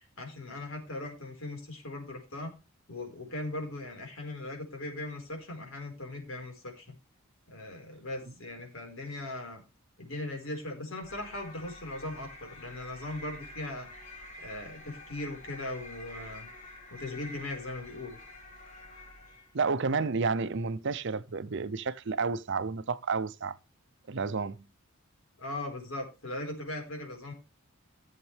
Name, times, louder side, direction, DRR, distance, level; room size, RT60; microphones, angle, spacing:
voice 1, 0.0-2.6 2.9-6.9 7.5-9.6 10.0-13.9 14.4-16.5 16.9-18.2 25.4-27.3, left 2 dB, 70° left, 4.5 m, -39 dB
sound 1, 11.0-19.6, left 1 dB, 35° left, 2.7 m, -48 dB
voice 2, 19.5-23.6 24.1-24.6, right 4 dB, 60° right, 0.6 m, -30 dB
15.0 x 7.5 x 3.4 m
head